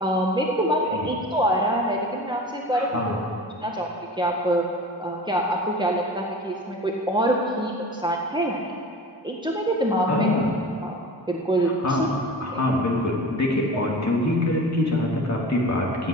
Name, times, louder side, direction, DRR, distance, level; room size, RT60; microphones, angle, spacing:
voice 1, 0.0-3.2 3.6-3.9 4.2-4.6 5.0-8.6 9.2-10.3 10.8-11.0 11.3-12.1 12.5-12.6 13.7-13.8, right 1 dB, 10° right, -2 dB, 1.7 m, -25 dB
voice 2, 2.7-3.2 10.1-10.5 11.8-12.0 12.4-16.1, left 1 dB, 35° left, -2 dB, 3.1 m, -24 dB
16.5 x 8.2 x 8.6 m, 2.4 s
wide cardioid pair, 90°, 46 cm